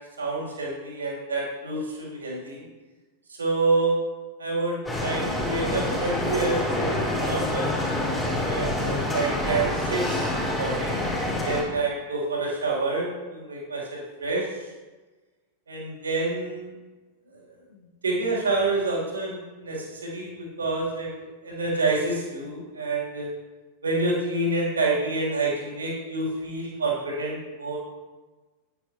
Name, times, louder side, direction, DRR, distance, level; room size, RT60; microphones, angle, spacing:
voice 1, 0.2-2.6 3.3-4.0 4.4-7.8 8.4-14.5 15.7-16.7 18.0-21.1 21.4-23.3 23.8-27.8, right 3 dB, 70° right, -4 dB, 3.0 m, -28 dB
sound 1, 4.8-11.6, left 1 dB, 10° left, 3.3 m, -27 dB
10.0 x 9.8 x 2.9 m, 1.3 s
figure-of-eight pair, 90°, 0 cm